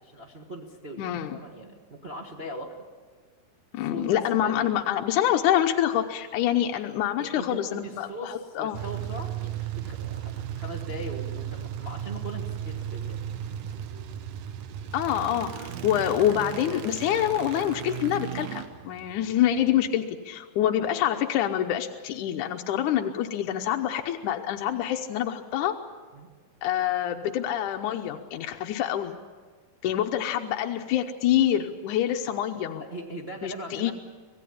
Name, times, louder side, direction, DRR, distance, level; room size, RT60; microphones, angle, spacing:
voice 1, 0.0-1.0 1.3-2.7 3.7-4.7 7.2-13.2 13.7-13.8 26.1-26.3 32.7-33.9, right 1 dB, 45° right, -1 dB, 0.7 m, -40 dB
voice 2, 1.0-1.4 3.7-8.8 14.9-25.8 26.6-29.2 29.8-32.8 33.4-33.9, left 11 dB, 70° left, 4 dB, 2.0 m, -26 dB
sound 1, 8.7-19.9, right 10 dB, 90° right, 1.5 m, -35 dB
26.0 x 18.0 x 8.5 m, 1.5 s
omnidirectional pair, 4.4 m